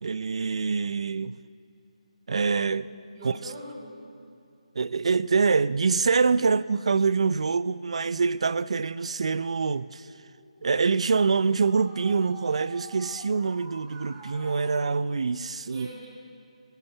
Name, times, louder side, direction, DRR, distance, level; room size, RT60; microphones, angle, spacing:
voice 1, 0.0-1.4 2.3-2.9 3.2-3.4 4.7-10.1 10.6-15.9, right 5 dB, 55° right, 0.6 m, -25 dB
voice 2, 3.1-4.0 15.7-16.1, equal, 30° right, 7.1 m, -42 dB
sound 1, 9.2-14.9, right 3 dB, 15° right, 3.2 m, -47 dB
22.0 x 15.5 x 8.2 m
figure-of-eight pair, 160°, 4 cm